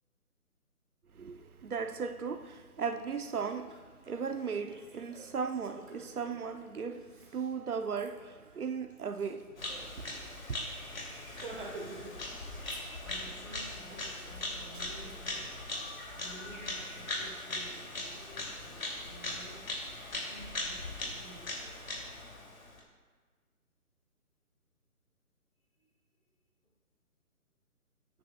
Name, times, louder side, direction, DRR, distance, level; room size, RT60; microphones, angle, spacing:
voice 1, 1.1-9.6 9.9-10.7, right 5 dB, 70° right, 1.0 m, -37 dB
Laughter, 2.8-2.9 3.2-9.9 10.2-10.3 10.6-10.8 11.2-12.2 12.4-13.3 13.7-15.2, right 2 dB, 35° right, 1.3 m, -50 dB
Bird vocalization bird call bird song, 9.6-22.8, left 2 dB, 65° left, 2.9 m, -40 dB
voice 2, 12.4-19.6 20.0-21.8 25.8-25.9, right 1 dB, 5° left, 1.3 m, -53 dB
18.5 x 9.2 x 2.4 m
hypercardioid pair, 170°, 45 cm